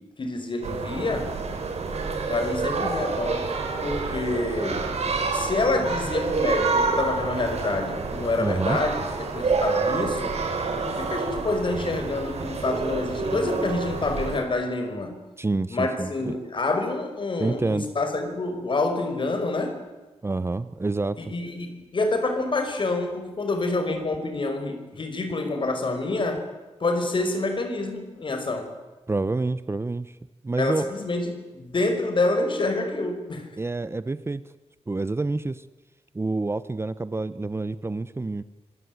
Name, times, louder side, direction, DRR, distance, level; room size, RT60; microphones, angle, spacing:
voice 1, 0.0-1.4 2.3-5.0 5.3-10.4 10.9-15.2 15.7-19.8 21.2-26.5 26.8-28.7 30.6-33.5, left 2 dB, 45° left, 7 dB, 5.3 m, -27 dB
sound 1, 0.6-14.4, right 4 dB, 70° right, 5.6 m, -28 dB
voice 2, 8.4-8.8 15.4-16.3 17.4-17.9 20.2-21.2 29.1-30.2 30.4-30.8 33.6-34.4 34.9-35.6 36.1-38.4, right 3 dB, 20° right, 14 dB, 0.8 m, -27 dB
26.0 x 24.0 x 9.5 m, 1.2 s
wide cardioid pair, 135°, 11 cm